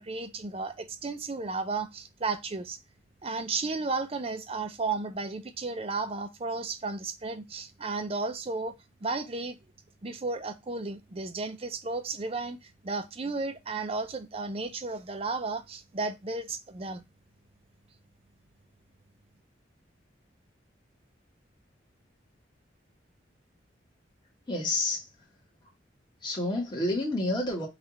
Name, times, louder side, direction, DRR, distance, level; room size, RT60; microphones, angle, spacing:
voice 1, 0.0-2.8 3.2-9.6 10.0-17.0, right 3 dB, 30° right, 0.5 m, -34 dB
voice 2, 24.5-25.3 25.6-25.7 26.2-27.7, left 2 dB, 25° left, 1.4 m, -29 dB
5.6 x 2.4 x 3.0 m
head